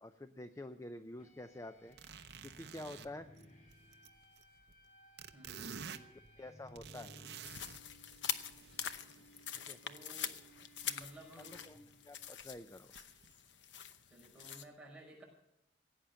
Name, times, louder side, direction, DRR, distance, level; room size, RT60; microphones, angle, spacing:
voice 1, 0.0-2.0 2.4-3.3 6.4-7.1 9.7-9.8 11.7-11.8 12.0-12.9, left 1 dB, 15° left, 9 dB, 0.5 m, -48 dB
sound 1, 1.2-12.3, equal, 40° left, 2.3 m, -61 dB
sound 2, 1.9-4.9 5.2-7.8 8.1-9.5 10.8-11.1 11.5-11.6 12.1-12.2 13.0-13.3, right 6 dB, 65° right, 0.8 m, -51 dB
voice 2, 5.3-6.1 9.8-10.3 10.8-11.5 14.1-15.2, right 1 dB, 5° right, -4 dB, 5.6 m, -55 dB
sound 3, 7.4-14.6, left 9 dB, 75° left, 0.9 m, -44 dB
16.5 x 8.9 x 6.9 m, 0.82 s
head